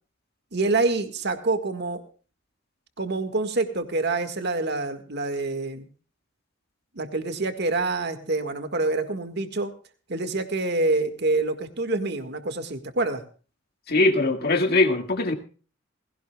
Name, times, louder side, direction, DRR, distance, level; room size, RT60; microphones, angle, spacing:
voice 1, 0.5-2.0 3.0-5.9 7.0-9.7 10.1-13.2, right 3 dB, 60° right, 1.8 m, -26 dB
voice 2, 13.9-15.3, left 2 dB, 55° left, 2.0 m, -21 dB
20.0 x 17.0 x 2.3 m
head